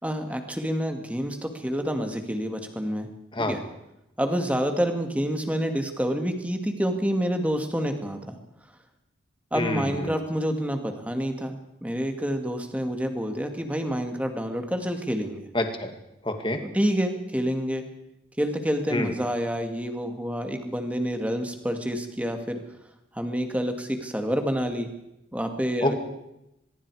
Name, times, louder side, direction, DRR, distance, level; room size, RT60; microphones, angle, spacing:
voice 1, 0.0-3.1 3.4-3.6 4.2-8.4 9.5-15.4 16.6-17.8 18.4-22.6 23.1-24.9 25.3-25.9, equal, 5° right, 5 dB, 2.1 m, -28 dB
voice 2, 9.5-10.2 15.5-15.9 16.2-16.6 18.9-19.1 25.8-25.9, left 1 dB, 25° left, 6 dB, 2.4 m, -27 dB
24.0 x 22.0 x 4.9 m, 0.87 s
head